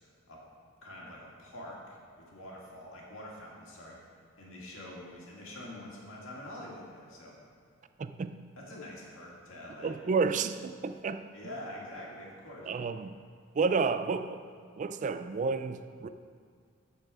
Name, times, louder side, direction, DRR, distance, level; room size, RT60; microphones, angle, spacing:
voice 1, 0.8-4.0 4.4-7.4 8.6-10.0 11.3-12.8, left 1 dB, 85° left, -3 dB, 2.0 m, -45 dB
voice 2, 8.0-8.5 9.8-11.2 12.7-13.2 13.5-14.4 14.8-16.1, right 4 dB, 40° right, 10 dB, 0.3 m, -31 dB
12.5 x 4.5 x 4.9 m, 2.2 s
head